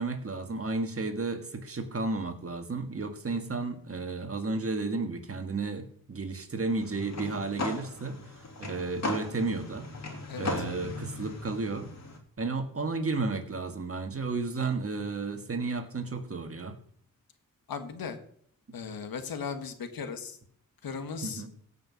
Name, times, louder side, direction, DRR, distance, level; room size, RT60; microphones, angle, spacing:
voice 1, 0.0-9.9 10.3-11.9 12.4-16.8 21.2-21.5, right 3 dB, 40° right, 7 dB, 1.7 m, -33 dB
sound 1, 6.7-12.2, left 3 dB, 50° left, 2.6 m, -37 dB
voice 2, 10.3-10.6 17.7-18.2 18.7-20.4 20.8-21.4, left 6 dB, 80° left, 8 dB, 1.5 m, -37 dB
16.0 x 5.7 x 6.3 m, 0.62 s
cardioid pair, 75°, 35 cm